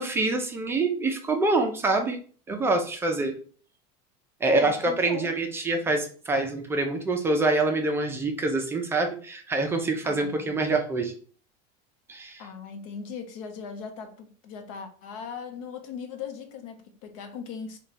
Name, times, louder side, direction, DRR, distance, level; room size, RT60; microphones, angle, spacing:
voice 1, 0.0-2.2 2.5-3.4 4.4-11.2 12.1-12.4, right 2 dB, 15° right, 0.4 m, -26 dB
voice 2, 4.5-5.3 10.0-10.7 12.4-17.8, left 6 dB, 70° left, 0.7 m, -39 dB
3.1 x 2.3 x 4.0 m
supercardioid pair, 150°, 17 cm